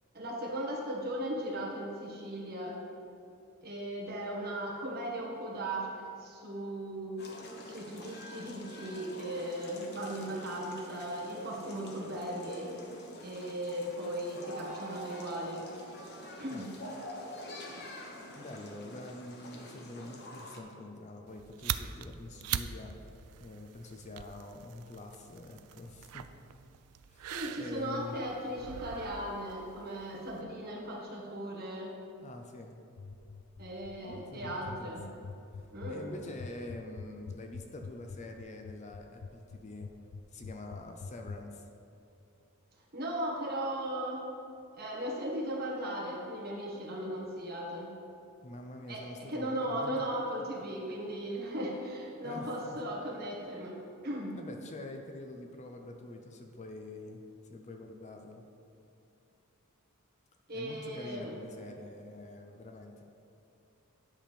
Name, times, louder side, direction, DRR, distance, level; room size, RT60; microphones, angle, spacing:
voice 1, 0.1-2.8 3.6-7.2 7.6-12.7 13.2-15.7 16.4-16.7 27.3-31.9 33.6-35.0 35.7-36.1 42.9-44.3 44.7-47.9 48.9-54.4 60.5-61.3, right 1 dB, 45° right, -4 dB, 1.6 m, -37 dB
sound 1, 7.2-20.6, left 1 dB, 45° left, 1.0 m, -46 dB
voice 2, 18.3-23.0 23.4-26.3 27.1-28.2 32.2-32.8 34.0-35.3 35.9-39.9 40.3-41.7 48.4-50.1 52.2-52.8 54.3-57.2 57.5-58.4 60.5-63.0, left 2 dB, 30° left, 3 dB, 0.5 m, -46 dB
sound 2, 21.3-30.4, right 10 dB, 85° right, 0.4 m, -42 dB
sound 3, 33.0-41.4, left 5 dB, 85° left, 0.4 m, -44 dB
10.0 x 3.6 x 6.7 m, 2.8 s
head